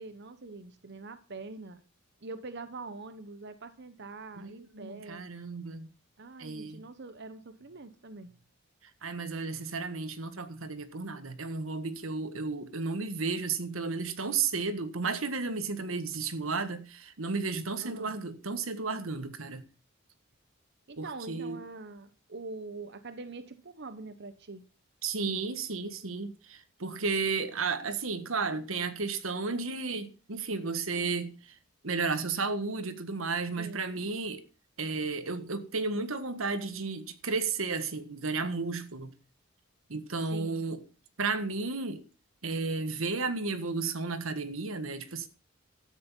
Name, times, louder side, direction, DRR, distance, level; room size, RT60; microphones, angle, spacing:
voice 1, 0.0-1.8 2.2-5.2 6.2-8.4 17.8-18.2 20.9-24.7 33.6-34.1 40.3-40.6, right 3 dB, 55° right, 1.1 m, -44 dB
voice 2, 4.4-5.9 6.4-6.8 9.0-19.6 21.0-21.6 25.0-31.6 31.8-34.4 34.8-39.1 39.9-40.8 41.2-42.0 42.4-45.3, right 4 dB, 90° right, 1.6 m, -33 dB
13.0 x 9.6 x 5.5 m
head